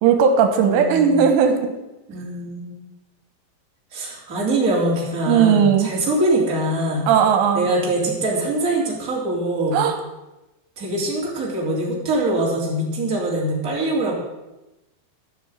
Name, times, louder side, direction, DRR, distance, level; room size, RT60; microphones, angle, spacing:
voice 1, 0.0-1.7 5.3-5.9 7.1-7.7 9.7-10.0, right 7 dB, 85° right, 6 dB, 3.7 m, -17 dB
voice 2, 0.6-1.3 2.1-2.9 3.9-7.1 7.5-9.8 10.8-14.1, right 1 dB, 20° right, -4 dB, 3.2 m, -23 dB
14.5 x 6.4 x 9.0 m, 0.99 s
omnidirectional pair, 5.5 m